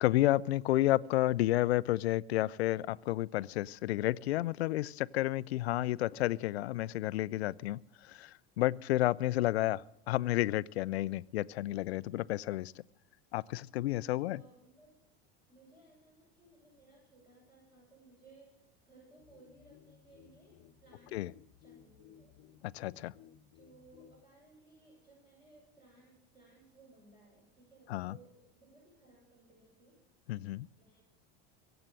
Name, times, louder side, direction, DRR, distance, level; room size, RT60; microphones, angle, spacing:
voice 1, 0.0-12.7 13.3-14.4 21.1-21.3 22.6-23.1 27.9-28.2 30.3-30.7, left 16 dB, 90° left, 20 dB, 0.5 m, -31 dB
voice 2, 14.1-15.0 15.5-21.3 21.6-22.4 23.5-30.0 30.7-31.0, right 2 dB, 15° right, -4 dB, 7.7 m, -61 dB
sound 1, 19.2-24.3, left 10 dB, 45° left, 1.2 m, -60 dB
23.0 x 8.0 x 7.5 m, 0.78 s
hypercardioid pair, 95°, 31 cm